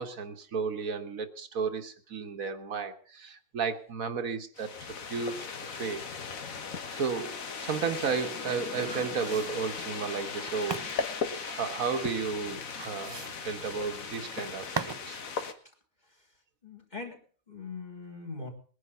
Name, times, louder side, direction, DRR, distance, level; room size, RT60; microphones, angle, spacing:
voice 1, 0.0-4.7 5.1-6.0 6.9-7.4 7.6-10.8 11.5-15.2, right 5 dB, 80° right, 7 dB, 1.7 m, -33 dB
sound 1, 4.6-15.5, left 5 dB, 75° left, 1.8 m, -38 dB
sound 2, 7.9-15.1 15.4-15.5, right 4 dB, 25° right, 0.6 m, -41 dB
voice 2, 16.6-18.5, left 4 dB, 30° left, 1 dB, 3.4 m, -41 dB
21.0 x 10.0 x 5.6 m, 0.43 s
omnidirectional pair, 1.4 m